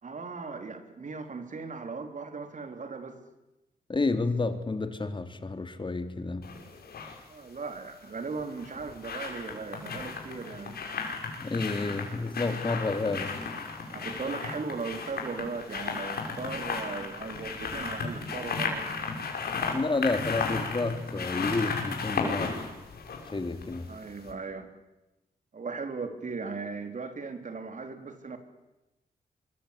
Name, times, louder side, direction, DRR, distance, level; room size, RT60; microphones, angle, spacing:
voice 1, 0.0-3.2 7.3-10.8 13.9-18.9 23.9-24.7 25.5-28.4, right 4 dB, 50° right, 7 dB, 4.0 m, -37 dB
voice 2, 3.9-6.5 11.4-13.4 19.7-22.6 23.3-23.9, left 3 dB, 30° left, 8 dB, 2.9 m, -30 dB
sound 1, 6.4-7.2 8.4-23.9 24.2-24.3, left 5 dB, 80° left, 6.2 m, -34 dB
24.5 x 23.5 x 8.6 m, 0.98 s
cardioid pair, 75°, 16 cm